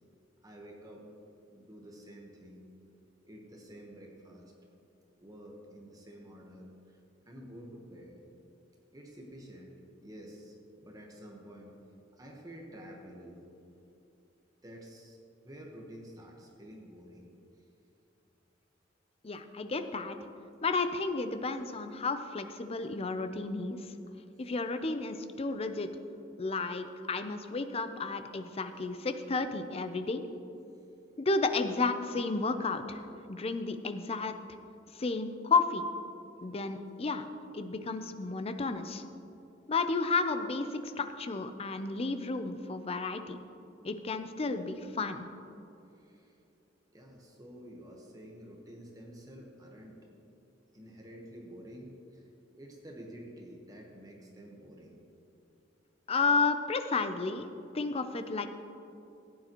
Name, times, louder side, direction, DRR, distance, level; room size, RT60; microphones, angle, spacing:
voice 1, 0.4-1.1 1.5-2.6 3.3-4.5 5.2-8.2 8.9-9.7 10.0-11.7 12.1-13.5 14.6-15.2 15.4-17.3 17.5-17.6 24.4-24.5 45.9-46.4 46.9-50.0 50.7-52.3 52.5-55.0, equal, 20° right, 0 dB, 1.1 m, -50 dB
voice 2, 19.2-20.2 20.6-23.8 24.4-25.9 26.4-30.3 31.2-33.0 33.3-34.3 34.9-35.9 36.4-37.3 37.5-39.0 39.7-43.4 43.8-45.3 56.1-58.5, left 3 dB, 30° left, 8 dB, 0.5 m, -32 dB
15.0 x 9.3 x 3.0 m, 2.8 s
head